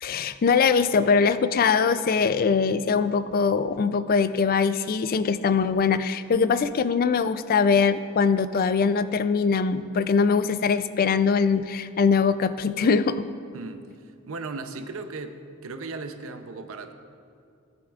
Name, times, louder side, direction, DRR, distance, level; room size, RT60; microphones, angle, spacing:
voice 1, 0.0-13.2, left 5 dB, 40° left, 13 dB, 0.3 m, -22 dB
voice 2, 13.5-13.9 14.3-16.9, right 3 dB, 70° right, 8 dB, 0.6 m, -36 dB
17.0 x 8.6 x 2.4 m, 2.4 s
head